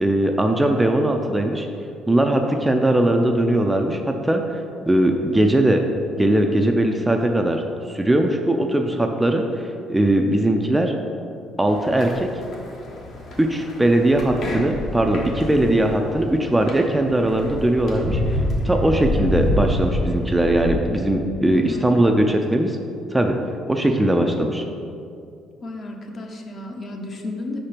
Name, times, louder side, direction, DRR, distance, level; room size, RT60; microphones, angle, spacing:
voice 1, 0.0-1.7 2.1-4.4 4.9-5.8 6.2-7.6 7.9-10.9 11.6-12.3 13.4-18.4 18.6-22.8 23.1-23.3 23.7-24.6, right 1 dB, 10° right, 3 dB, 0.4 m, -20 dB
sound 1, 11.7-20.7, left 1 dB, 60° left, 1.1 m, -27 dB
voice 2, 21.5-21.9 25.6-27.6, left 2 dB, 40° left, 2 dB, 0.8 m, -33 dB
4.9 x 4.4 x 5.0 m, 2.5 s
cardioid pair, 105°, 0 cm